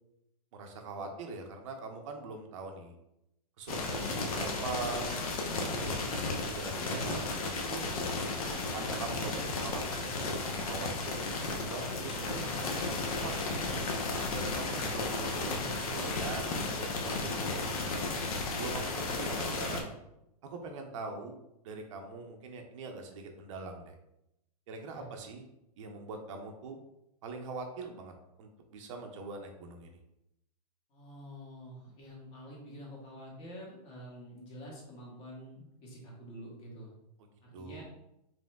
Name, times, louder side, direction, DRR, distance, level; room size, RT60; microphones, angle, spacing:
voice 1, 0.5-2.9 3.6-5.2 5.6-7.9 8.7-13.6 14.1-19.9 20.4-21.4 21.6-23.9 24.7-25.4 25.8-26.8 27.2-28.1 28.4-30.0 37.5-37.8, right 3 dB, 50° right, 4 dB, 0.6 m, -42 dB
sound 1, 3.7-19.8, left 3 dB, 60° left, 0.8 m, -34 dB
voice 2, 14.6-15.9 24.9-25.1 30.9-36.9 37.4-37.8, equal, 35° left, -3 dB, 1.4 m, -48 dB
5.1 x 3.1 x 2.2 m, 0.85 s
hypercardioid pair, 150°, 20 cm